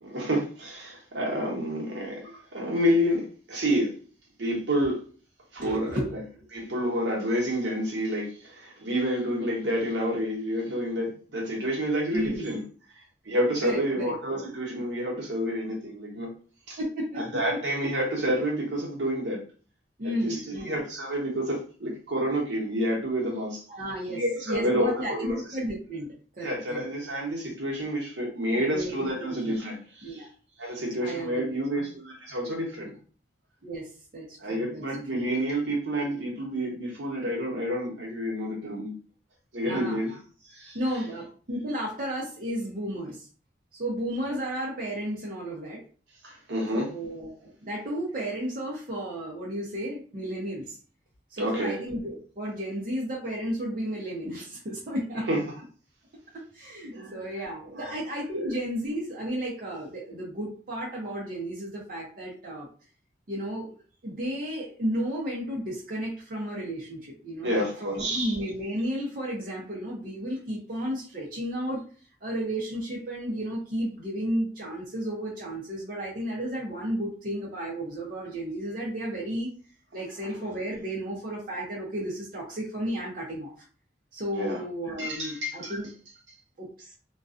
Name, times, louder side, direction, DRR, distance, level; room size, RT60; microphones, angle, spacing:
voice 1, 0.0-3.9 4.4-5.0 5.5-6.2 6.5-12.6 13.2-16.3 16.7-16.8 17.1-19.4 20.0-23.6 24.1-25.4 26.4-30.3 30.6-32.9 34.4-38.9 39.5-40.2 40.5-40.8 46.2-46.9 51.4-51.8 55.3-55.4 56.9-57.2 57.7-57.9 58.3-58.5 67.4-68.3 84.4-84.6 85.0-85.7, equal, 80° right, 0.9 m, -29 dB
voice 2, 5.6-6.1 12.1-12.6 13.6-14.1 16.8-17.3 20.0-20.8 23.7-26.9 28.7-29.1 29.4-29.6 30.0-30.3 31.0-31.5 33.6-34.8 35.1-35.2 39.7-40.0 40.7-43.3 43.7-45.8 46.7-50.8 51.3-55.3 56.5-62.7 63.3-63.7 64.0-71.8 72.2-79.5 79.9-83.5 84.1-85.9 86.6-86.9, right 1 dB, 50° right, 0.6 m, -33 dB
2.4 x 2.2 x 2.4 m
head